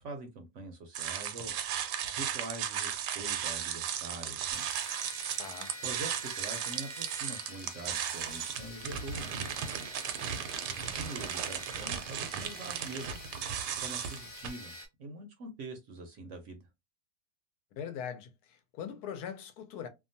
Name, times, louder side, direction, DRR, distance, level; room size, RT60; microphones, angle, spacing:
voice 1, 0.0-1.5 2.0-4.7 5.8-10.1 10.8-14.7 15.0-16.7, right 2 dB, 60° right, 0.8 m, -44 dB
sound 1, 0.9-14.5, right 9 dB, 90° right, 1.2 m, -36 dB
sound 2, 4.5-14.9, equal, 15° left, 0.5 m, -46 dB
voice 2, 5.4-5.7 17.8-19.9, left 8 dB, 75° left, 1.1 m, -41 dB
2.8 x 2.3 x 2.6 m
omnidirectional pair, 1.7 m